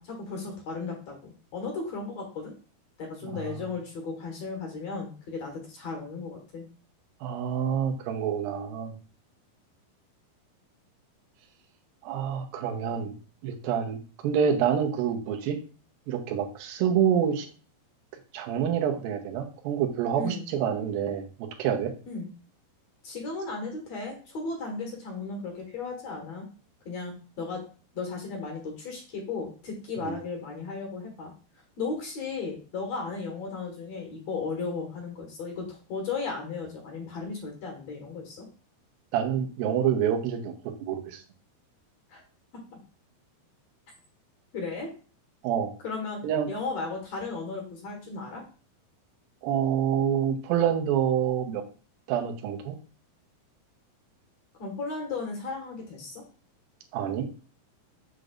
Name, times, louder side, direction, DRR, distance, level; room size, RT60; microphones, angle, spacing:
voice 1, 0.0-2.5 3.0-6.7 20.2-20.5 22.1-22.3 23.0-26.5 26.8-27.6 27.9-31.3 31.8-38.5 42.1-42.2 44.5-44.9 45.8-48.4 54.6-56.2, left 4 dB, 55° left, 1 dB, 2.4 m, -35 dB
voice 2, 3.2-3.5 7.2-9.0 12.0-13.2 13.4-15.6 16.1-17.5 18.3-21.2 21.6-21.9 30.0-30.2 39.1-40.5 40.8-41.2 45.4-45.7 46.2-46.5 49.4-51.6 52.1-52.8 56.9-57.3, right 8 dB, 75° right, 3 dB, 2.6 m, -27 dB
7.5 x 6.7 x 2.5 m, 0.37 s
omnidirectional pair, 4.4 m